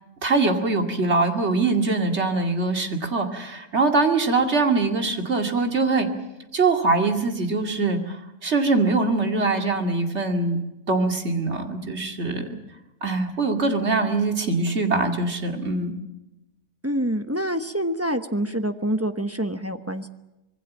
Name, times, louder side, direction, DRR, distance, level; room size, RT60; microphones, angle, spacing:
voice 1, 0.2-6.1 6.5-10.6 10.9-12.5 13.0-15.9, right 3 dB, 45° right, 4 dB, 2.6 m, -23 dB
voice 2, 16.8-20.1, right 1 dB, 10° right, 8 dB, 0.9 m, -26 dB
25.5 x 21.5 x 7.4 m, 0.98 s
omnidirectional pair, 1.6 m